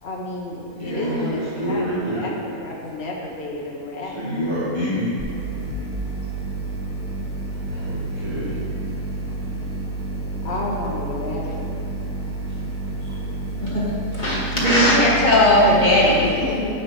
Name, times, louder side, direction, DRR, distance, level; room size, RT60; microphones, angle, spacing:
voice 1, 0.0-4.4 10.4-11.8 16.2-16.8, left 2 dB, 45° left, -2 dB, 1.5 m, -31 dB
voice 2, 0.7-2.3 4.0-5.2 7.7-8.6, equal, 45° right, -12 dB, 2.6 m, -27 dB
sound 1, 5.2-16.2, right 2 dB, 85° right, 2.2 m, -29 dB
voice 3, 14.1-16.3, left 1 dB, 30° left, -7 dB, 2.4 m, -17 dB
8.0 x 6.9 x 6.1 m, 2.5 s
omnidirectional pair, 1.5 m